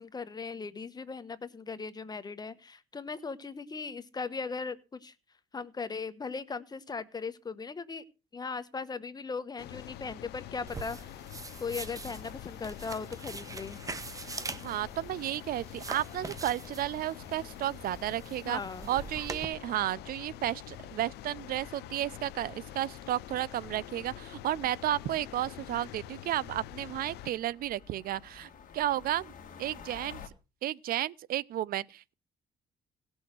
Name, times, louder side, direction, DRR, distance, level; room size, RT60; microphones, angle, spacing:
voice 1, 0.0-5.1 5.5-8.0 8.3-11.0 11.6-13.8 18.4-18.9, left 4 dB, 25° left, 1.1 m, -38 dB
sound 1, 9.6-27.3, left 13 dB, 75° left, 0.6 m, -46 dB
sound 2, 10.7-19.4, right 4 dB, 20° right, 1.1 m, -43 dB
voice 2, 14.6-18.6 18.9-29.3 29.6-30.2 30.6-32.1, right 13 dB, 60° right, 0.5 m, -33 dB
sound 3, 22.3-30.3, left 7 dB, 50° left, 1.9 m, -55 dB
17.5 x 6.4 x 6.1 m
cardioid pair, 110°, 17 cm